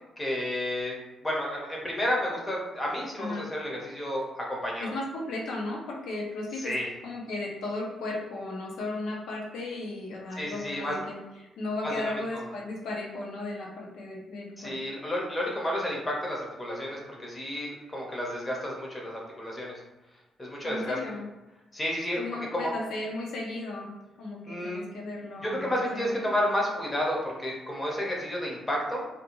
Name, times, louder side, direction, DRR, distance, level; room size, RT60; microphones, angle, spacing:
voice 1, 0.2-0.9 1.2-4.9 6.6-6.9 10.4-11.0 11.8-12.1 14.6-19.8 20.4-21.0 21.7-22.2 22.5-22.7 24.5-24.8 25.4-29.0, left 1 dB, 15° left, -2 dB, 0.6 m, -31 dB
voice 2, 4.8-6.7 7.0-14.8 20.6-21.3 22.2-23.9 24.2-26.3, left 2 dB, 85° left, -2 dB, 0.6 m, -35 dB
2.5 x 2.2 x 2.9 m, 1.1 s
cardioid pair, 155°, 0 cm